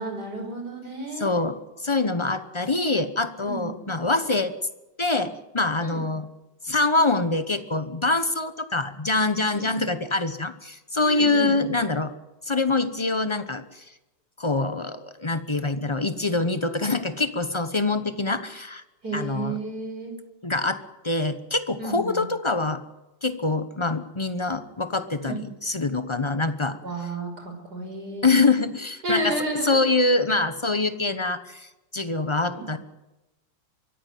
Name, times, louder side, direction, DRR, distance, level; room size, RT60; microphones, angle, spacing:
voice 1, 0.0-1.4 3.4-3.8 5.8-6.1 9.5-9.7 11.0-11.5 19.0-20.1 21.8-22.2 25.2-25.4 26.8-28.3 29.0-29.8 32.5-32.7, right 1 dB, 50° right, 4 dB, 6.2 m, -32 dB
voice 2, 1.2-4.5 5.0-6.3 6.6-12.1 12.4-13.8 14.4-18.8 19.1-19.5 20.4-22.8 23.2-26.8 28.2-29.4 29.6-32.8, left 3 dB, 30° left, 11 dB, 0.5 m, -25 dB
24.0 x 15.0 x 9.4 m, 1.0 s
omnidirectional pair, 2.2 m